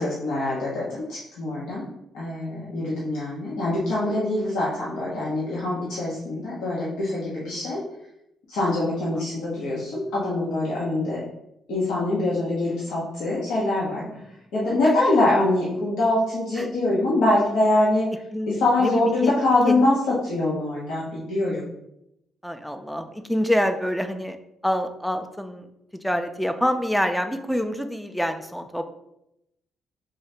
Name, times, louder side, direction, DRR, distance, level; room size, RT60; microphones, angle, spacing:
voice 1, 0.0-1.8 2.1-7.8 8.5-11.2 11.7-14.2 14.5-18.1 18.5-21.6, left 2 dB, 85° left, -7 dB, 0.9 m, -24 dB
voice 2, 8.7-9.3 16.6-16.7 18.3-18.5 18.8-19.3 19.7-19.9 22.4-24.4 24.6-25.7 26.0-28.9, equal, ahead, 8 dB, 0.4 m, -26 dB
3.8 x 2.7 x 3.3 m, 0.81 s
cardioid pair, 90°, 0 cm